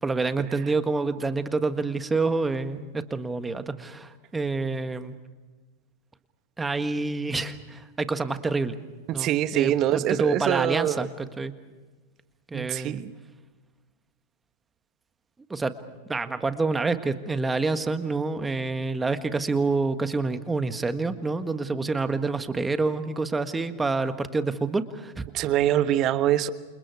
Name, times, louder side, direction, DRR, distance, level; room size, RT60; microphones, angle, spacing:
voice 1, 0.0-5.2 6.6-8.8 9.1-11.5 12.5-13.0 15.5-15.7 16.1-25.3, right 3 dB, 10° right, 10 dB, 1.6 m, -27 dB
voice 2, 9.1-11.1 12.5-13.1 25.3-26.5, right 12 dB, 35° right, 13 dB, 1.2 m, -24 dB
28.5 x 28.0 x 4.8 m, 1.3 s
figure-of-eight pair, 90°, 0 cm